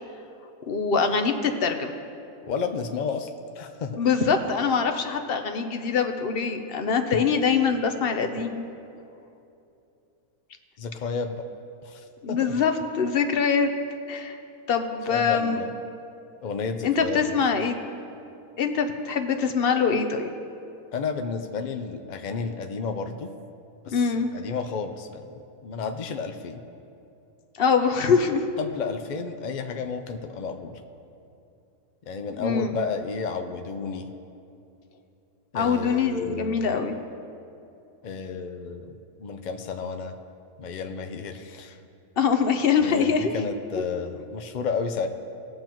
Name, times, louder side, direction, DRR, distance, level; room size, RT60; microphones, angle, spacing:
voice 1, 0.7-1.9 4.0-8.6 12.2-13.7 14.1-14.4 14.7-15.6 16.8-17.8 18.6-20.3 23.9-24.3 27.6-28.4 32.4-32.7 35.5-37.0 42.2-43.3, left 6 dB, 50° left, 6 dB, 0.7 m, -23 dB
voice 2, 2.5-4.0 10.8-11.5 11.8-12.5 15.1-15.7 16.4-17.4 20.9-23.3 23.9-25.3 25.6-26.6 28.6-30.8 32.1-34.1 35.5-36.7 38.0-40.1 40.6-41.8 42.8-45.1, left 5 dB, 85° left, 6 dB, 0.4 m, -32 dB
19.5 x 7.6 x 3.0 m, 2.7 s
omnidirectional pair, 1.6 m